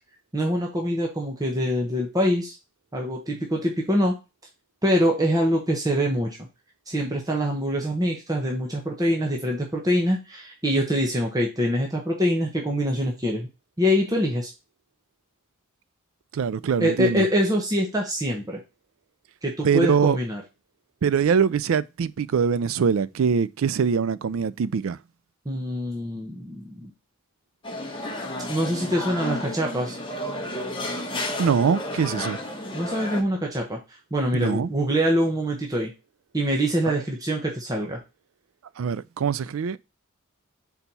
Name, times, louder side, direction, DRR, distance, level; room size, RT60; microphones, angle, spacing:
voice 1, 0.3-2.6 2.9-4.2 4.8-6.4 6.9-13.5 13.8-14.5 16.8-18.6 19.4-20.4 25.4-26.9 28.5-30.0 32.7-35.9 36.3-38.0, equal, 15° right, 1.0 m, -24 dB
voice 2, 16.3-17.3 19.6-20.2 21.0-25.0 31.4-32.4 34.3-34.7 36.9-37.0 38.8-39.8, right 6 dB, 70° right, 0.4 m, -23 dB
sound 1, 27.6-33.2, left 1 dB, 25° left, 1.2 m, -32 dB
4.5 x 4.1 x 5.4 m
head